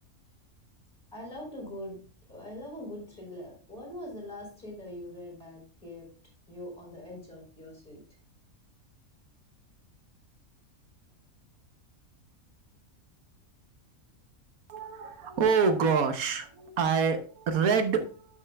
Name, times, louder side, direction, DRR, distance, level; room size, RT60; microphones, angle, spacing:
voice 1, 1.1-2.0 2.3-6.1 6.5-8.0, left 1 dB, 35° left, -1 dB, 4.4 m, -42 dB
voice 2, 14.7-18.1, right 5 dB, 80° right, 8 dB, 1.3 m, -26 dB
11.5 x 6.5 x 2.3 m, 0.40 s
omnidirectional pair, 1.5 m